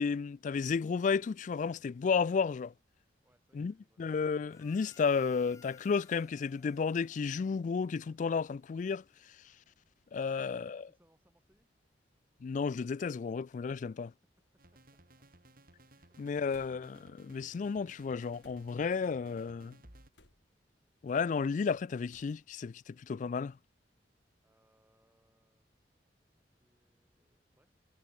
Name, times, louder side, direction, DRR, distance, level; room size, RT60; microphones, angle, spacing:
voice 1, 0.0-2.7 3.5-9.0 10.1-10.8 12.4-14.1 16.2-19.8 21.0-23.6, left 5 dB, 45° left, 0.3 m, -32 dB
voice 2, 3.2-4.1 10.2-11.7 13.6-14.0 14.5-15.2 24.4-25.7 26.0-27.9, equal, 10° right, 6.1 m, -73 dB
Harmonica, 4.5-8.3, left 4 dB, 20° left, 2.0 m, -62 dB
sound 1, 11.4-11.7 12.5-12.6 13.9-14.1 14.4-14.9 16.5-17.1 18.4-18.9 20.1-20.7 22.1-22.5, left 2 dB, 90° left, 4.5 m, -65 dB
sound 2, 14.6-20.1, right 1 dB, 55° right, 7.4 m, -60 dB
head